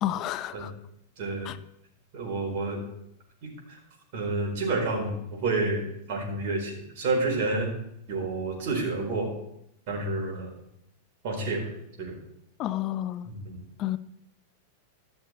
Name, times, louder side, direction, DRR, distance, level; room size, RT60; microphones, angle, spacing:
voice 1, 0.0-0.7 1.5-1.6 12.6-13.3 13.8-14.0, left 13 dB, 40° left, 0.5 m, -30 dB
voice 2, 1.2-1.5 2.1-2.8 3.4-3.5 4.1-5.8 6.1-7.7 8.1-9.3 9.9-10.5 11.2-11.6 12.0-12.2 13.2-13.6, right 3 dB, 55° right, 4.3 m, -29 dB
14.5 x 6.5 x 4.5 m
supercardioid pair, 130°, 0 cm